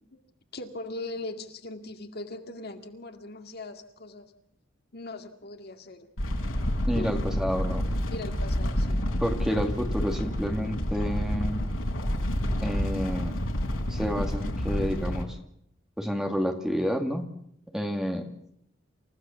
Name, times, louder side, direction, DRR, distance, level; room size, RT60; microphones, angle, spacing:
voice 1, 0.5-4.3 4.9-6.1 6.9-7.2 8.1-9.0, left 2 dB, 50° left, 6 dB, 2.1 m, -39 dB
sound 1, 6.2-15.2, equal, 85° left, 3.8 m, -29 dB
voice 2, 6.9-7.8 9.2-11.6 12.6-13.3 13.9-15.4 16.0-17.3 17.7-18.3, equal, 5° right, 4 dB, 2.2 m, -29 dB
28.5 x 15.5 x 7.1 m, 0.73 s
head